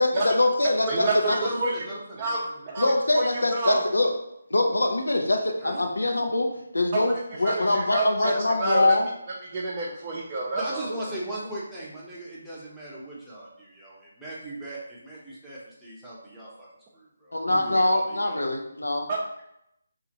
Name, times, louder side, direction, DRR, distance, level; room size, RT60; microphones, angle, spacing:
voice 1, 0.0-1.4 2.8-4.1 4.5-6.5 6.7-9.1 17.3-19.1, left 2 dB, 85° left, 3 dB, 0.6 m, -23 dB
voice 2, 0.9-2.8 5.6-5.8 10.5-16.7 16.9-18.4, right 1 dB, 5° right, -9 dB, 0.8 m, -38 dB
voice 3, 2.7-3.2 3.5-3.8 7.4-9.0 9.5-10.9 19.1-19.2, right 2 dB, 25° right, -5 dB, 0.5 m, -28 dB
3.8 x 2.5 x 2.9 m, 0.80 s
figure-of-eight pair, 155°, 0 cm